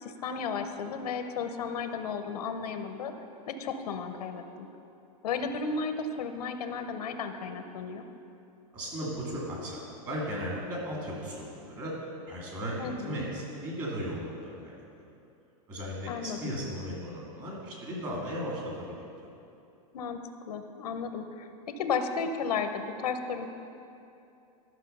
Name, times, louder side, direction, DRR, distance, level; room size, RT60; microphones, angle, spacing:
voice 1, 0.0-3.1 3.5-4.7 5.2-8.0 12.8-13.2 16.1-16.5 19.9-20.2 20.5-21.5 21.8-23.5, left 5 dB, 80° left, 7 dB, 0.8 m, -33 dB
voice 2, 8.7-9.8 10.0-14.8 15.7-19.1, equal, 20° right, -4 dB, 2.2 m, -36 dB
12.0 x 6.2 x 5.4 m, 2.7 s
supercardioid pair, 170°, 20 cm